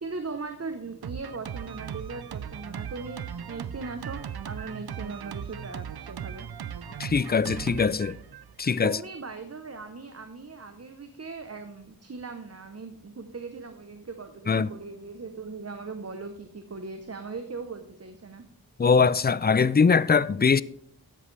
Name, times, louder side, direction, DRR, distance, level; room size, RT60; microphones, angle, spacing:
voice 1, 0.0-6.5 8.8-18.4, right 4 dB, 40° right, 0.8 m, -39 dB
Drum kit, 1.0-8.8, right 8 dB, 90° right, 0.5 m, -38 dB
voice 2, 7.0-8.2 8.6-9.0 14.5-14.7 18.8-20.6, left 5 dB, 30° left, 0.3 m, -22 dB
12.5 x 8.4 x 3.3 m
wide cardioid pair, 40°, 37 cm